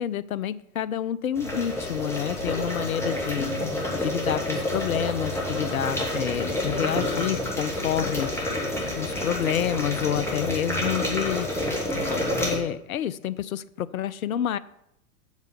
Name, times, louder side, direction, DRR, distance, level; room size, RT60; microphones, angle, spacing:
voice 1, 0.0-3.5 3.9-8.3 9.0-11.5 12.4-14.6, left 10 dB, 70° left, 17 dB, 0.6 m, -28 dB
sound 1, 1.4-12.6, left 1 dB, 5° left, 2.1 m, -29 dB
sound 2, 1.4-1.9 2.3-4.3 4.7-6.8 7.1-9.1 9.5-11.0, right 3 dB, 60° right, 1.8 m, -44 dB
8.1 x 5.5 x 6.7 m, 0.81 s
figure-of-eight pair, 100°, 44 cm